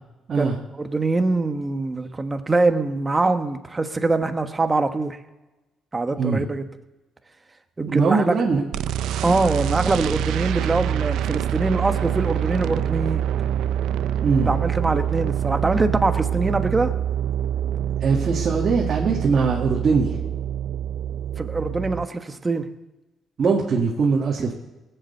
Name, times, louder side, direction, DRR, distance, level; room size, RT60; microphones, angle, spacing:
voice 1, 0.8-5.2 5.9-6.7 7.8-8.3 9.2-13.2 14.4-16.9 21.4-22.7, right 3 dB, 25° right, 7 dB, 1.2 m, -23 dB
voice 2, 7.9-8.7 14.2-14.5 18.0-20.2 23.4-24.5, right 4 dB, 50° right, -1 dB, 1.8 m, -21 dB
sound 1, 8.7-22.1, right 10 dB, 85° right, 0.5 m, -25 dB
18.5 x 8.1 x 6.7 m, 1.1 s
cardioid pair, 90°, 0 cm